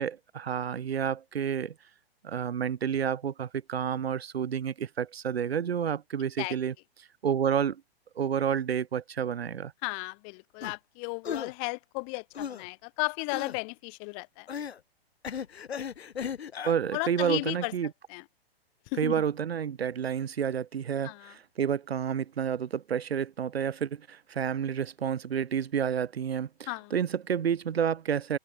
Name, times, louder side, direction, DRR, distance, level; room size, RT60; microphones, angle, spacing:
voice 1, 0.0-1.7 2.2-6.7 7.2-7.8 8.2-9.7 16.6-17.9 19.0-28.4, right 8 dB, 80° right, 4.0 m, -30 dB
voice 2, 9.8-14.5 16.9-17.7 18.1-18.2 18.9-19.2 21.0-21.3 26.7-26.9, left 39 dB, 35° left, 2.5 m, -34 dB
sound 1, 10.6-10.7 11.2-11.5 12.3-12.7 13.3-13.6 14.5-14.8 15.2-16.7, left 7 dB, 85° left, 2.3 m, -36 dB
hypercardioid pair, 145°, 31 cm